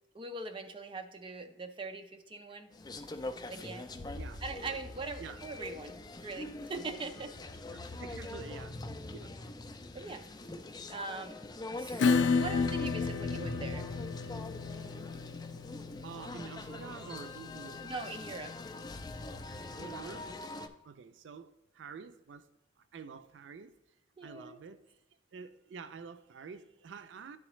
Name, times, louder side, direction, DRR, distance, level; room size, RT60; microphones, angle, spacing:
voice 1, 0.1-2.7 3.5-3.9 4.4-7.3 9.9-10.2 10.9-11.4 11.8-13.8 17.8-18.5 24.2-24.6, right 3 dB, 30° right, 0.6 m, -41 dB
sound 1, 2.7-20.7, left 2 dB, 20° left, 0.4 m, -43 dB
voice 2, 4.1-4.5 5.2-5.4 7.7-8.8 9.1-9.3 11.0-11.1 13.3-13.5 16.0-17.9 19.8-20.4 20.8-22.5 22.8-23.8 24.2-25.0 25.3-27.4, right 5 dB, 90° right, 0.4 m, -48 dB
Acoustic guitar / Strum, 12.0-19.2, left 4 dB, 85° left, 0.4 m, -33 dB
10.5 x 3.9 x 3.1 m
head